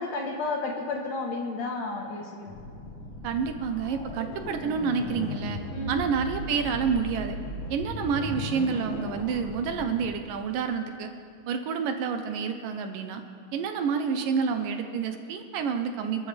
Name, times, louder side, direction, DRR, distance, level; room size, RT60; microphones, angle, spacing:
voice 1, 0.0-2.5 5.7-6.0, left 3 dB, 60° left, 1 dB, 2.1 m, -32 dB
sound 1, 2.5-10.1, left 1 dB, 40° left, 2.0 m, -37 dB
voice 2, 3.2-5.6 5.9-7.4 7.7-11.1 11.5-13.2 13.5-16.3, right 6 dB, 75° right, 7 dB, 2.4 m, -29 dB
27.5 x 13.0 x 3.4 m, 2.4 s
omnidirectional pair, 4.1 m